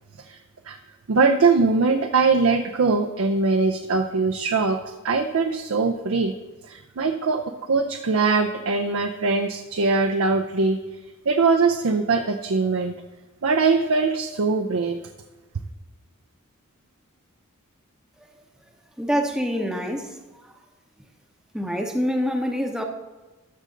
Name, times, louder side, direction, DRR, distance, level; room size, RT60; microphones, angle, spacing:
voice 1, 1.1-6.3 6.7-10.8 11.3-13.0 13.4-15.0, right 4 dB, 65° right, 6 dB, 0.5 m, -22 dB
voice 2, 19.0-20.5 21.5-22.8, equal, 5° right, 3 dB, 0.8 m, -26 dB
13.0 x 6.4 x 3.8 m, 1.2 s
head